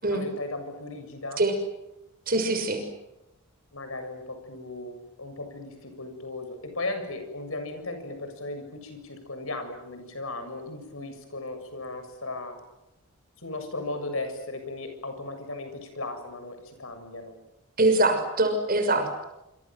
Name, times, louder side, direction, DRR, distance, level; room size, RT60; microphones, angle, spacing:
voice 1, 0.1-1.4 3.7-12.6 13.4-17.4, left 2 dB, 65° left, 7 dB, 7.3 m, -36 dB
voice 2, 2.3-2.8 17.8-19.2, right 2 dB, 40° right, 7 dB, 6.3 m, -23 dB
27.5 x 27.0 x 7.7 m, 0.92 s
head